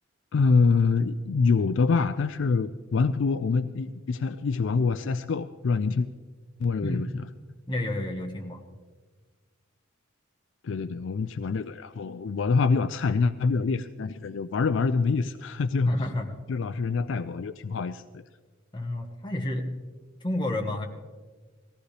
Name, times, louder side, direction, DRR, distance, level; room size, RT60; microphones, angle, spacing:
voice 1, 0.3-6.1 6.6-7.3 10.6-15.9 16.5-18.2, left 4 dB, 65° left, 12 dB, 0.4 m, -25 dB
voice 2, 6.8-7.1 7.7-8.6 15.9-16.3 18.7-19.7 20.2-20.9, left 1 dB, 20° left, 2 dB, 1.3 m, -30 dB
18.5 x 15.0 x 3.3 m, 1.4 s
head